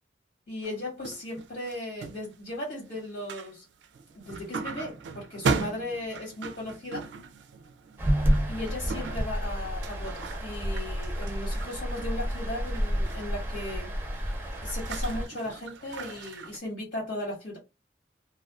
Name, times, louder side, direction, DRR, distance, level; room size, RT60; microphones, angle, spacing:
voice 1, 0.5-3.6 4.1-7.1 8.5-13.9 14.2-17.6, left 1 dB, 70° left, 1.6 m, -37 dB
sound 1, 0.6-2.6 2.9-3.5 3.8-16.6, right 4 dB, 80° right, 0.3 m, -38 dB
sound 2, 8.0-15.3, equal, 10° right, 0.6 m, -30 dB
2.3 x 2.3 x 2.3 m
head